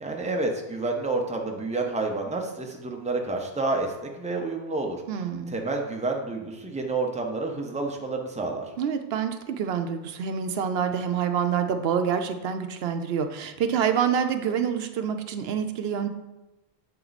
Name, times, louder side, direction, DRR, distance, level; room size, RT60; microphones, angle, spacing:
voice 1, 0.0-5.0 5.5-8.7, right 3 dB, 10° right, 2 dB, 0.7 m, -29 dB
voice 2, 5.1-5.5 8.8-16.1, right 7 dB, 80° right, 7 dB, 0.8 m, -27 dB
7.6 x 4.5 x 4.0 m, 1.1 s
omnidirectional pair, 1.0 m